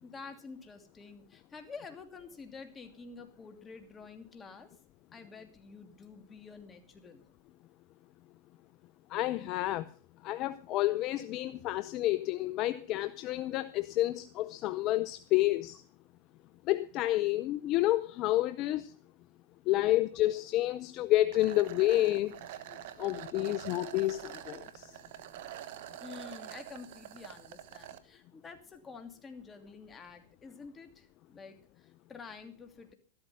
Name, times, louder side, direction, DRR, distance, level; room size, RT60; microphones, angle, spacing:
voice 1, 0.0-4.7 5.1-7.3 26.0-32.9, left 4 dB, 20° left, 2.7 m, -49 dB
voice 2, 9.1-9.8 10.2-15.8 16.7-18.9 19.7-22.3 23.0-24.9, left 16 dB, 45° left, 0.7 m, -29 dB
sound 1, 21.3-28.0, right 12 dB, 60° right, 1.3 m, -46 dB
13.0 x 12.5 x 5.6 m
hypercardioid pair, 115°, 0 cm